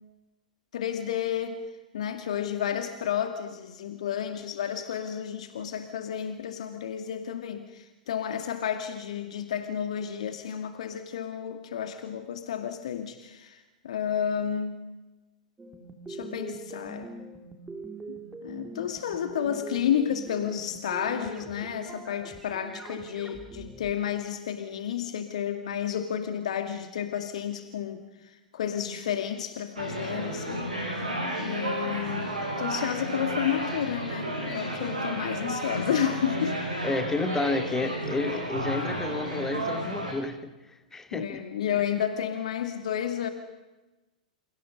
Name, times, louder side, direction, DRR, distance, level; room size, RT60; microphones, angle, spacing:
voice 1, 0.7-1.6 1.9-14.9 16.1-17.1 18.1-18.2 18.4-30.7 31.4-32.3 32.6-36.6 41.1-43.3, left 9 dB, 55° left, 8 dB, 2.3 m, -31 dB
sound 1, 15.6-23.9, right 3 dB, 10° right, 3.6 m, -42 dB
sound 2, 29.8-40.1, right 1 dB, 80° right, 7.9 m, -32 dB
voice 2, 36.8-40.5 40.9-41.4 41.7-41.8, left 3 dB, 10° left, 8 dB, 2.6 m, -31 dB
29.0 x 28.5 x 5.4 m, 1.1 s
figure-of-eight pair, 100°, 4 cm